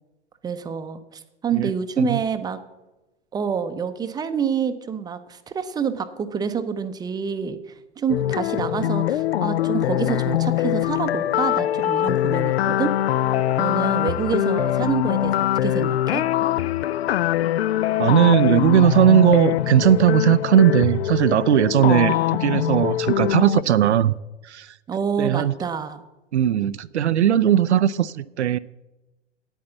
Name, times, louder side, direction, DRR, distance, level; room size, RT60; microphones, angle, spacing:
voice 1, 0.4-2.6 3.3-7.6 8.0-12.9 13.6-16.2 24.9-26.0, right 6 dB, 10° right, 10 dB, 0.6 m, -27 dB
sound 1, 8.1-23.6, left 13 dB, 60° left, 0.4 m, -23 dB
voice 2, 18.0-24.1 24.5-24.7 25.2-25.5 26.3-28.6, right 10 dB, 70° right, 15 dB, 0.5 m, -18 dB
9.5 x 8.9 x 7.1 m, 1.0 s
figure-of-eight pair, 100°, 35 cm